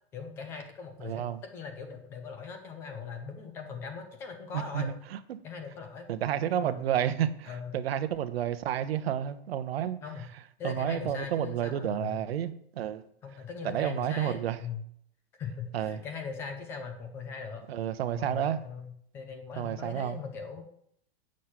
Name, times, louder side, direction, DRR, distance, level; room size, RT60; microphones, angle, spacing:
voice 1, 0.1-4.9 5.4-6.1 6.5-7.0 7.5-7.8 10.0-10.3 10.6-12.2 13.2-14.8 15.4-17.6 18.1-20.6, left 5 dB, 10° left, 0.5 m, -40 dB
voice 2, 1.0-1.4 4.5-5.4 6.1-10.0 10.6-13.0 13.6-14.6 15.7-16.0 17.7-18.6 19.6-20.2, right 10 dB, 70° right, 0.9 m, -31 dB
9.5 x 6.5 x 5.8 m
supercardioid pair, 180°, 31 cm